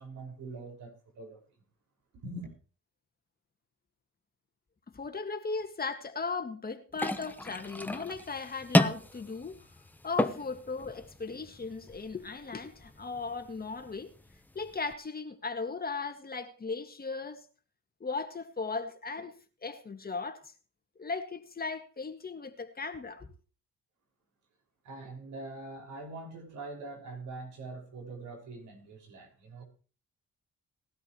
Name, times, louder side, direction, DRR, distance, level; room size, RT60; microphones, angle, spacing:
voice 1, 0.0-1.4 2.2-2.5 24.8-29.6, right 2 dB, 75° right, 5.7 m, -43 dB
voice 2, 4.9-9.6 10.0-14.1 14.6-17.4 18.0-19.3 19.6-20.5 21.0-23.3, left 4 dB, 30° left, 1.9 m, -37 dB
sound 1, 6.9-14.9, left 1 dB, 5° left, 0.9 m, -33 dB
19.5 x 12.5 x 3.1 m
cardioid pair, 90°, 30 cm